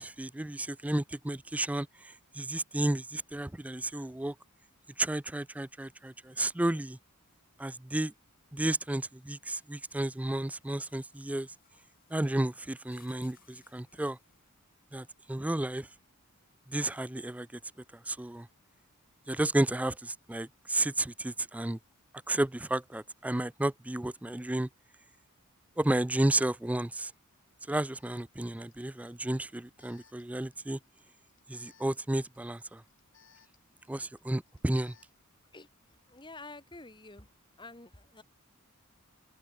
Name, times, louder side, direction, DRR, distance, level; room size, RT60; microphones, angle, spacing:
voice 1, 0.0-4.3 5.0-7.0 7.6-8.1 8.5-11.5 12.1-14.2 14.9-15.9 16.7-17.5 17.9-18.5 19.3-21.8 22.3-24.7 25.8-27.1 27.7-30.8 31.5-32.8 33.9-34.9, right 1 dB, 5° right, 0.3 m, -32 dB
sound 1, 9.1-14.5 16.8-17.1 19.6-19.7, left 8 dB, 40° left, 7.2 m, -67 dB
Alarm, 27.1-27.2 27.9-35.3, left 7 dB, 60° left, 6.4 m, -66 dB
voice 2, 36.1-37.3 37.6-38.2, left 2 dB, 20° left, 3.3 m, -48 dB
open air
head